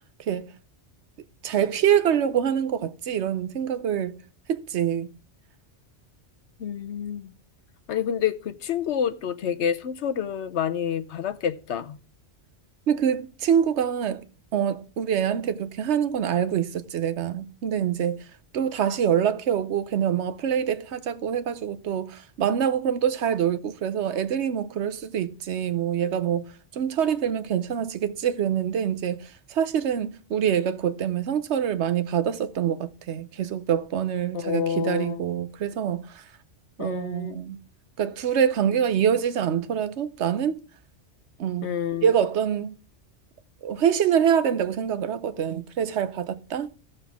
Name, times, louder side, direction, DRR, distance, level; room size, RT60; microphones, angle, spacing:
voice 1, 1.4-4.2 4.5-5.1 12.9-14.2 14.5-18.2 18.5-26.4 26.7-36.2 36.8-37.6 38.0-40.6 41.4-41.7 42.0-42.7 43.6-46.7, right 8 dB, 75° right, 1.0 m, -25 dB
voice 2, 6.6-7.3 7.9-12.0 34.3-35.2 36.8-37.4 41.6-42.1, left 8 dB, 75° left, 1.0 m, -28 dB
15.5 x 6.8 x 3.5 m
omnidirectional pair, 1.2 m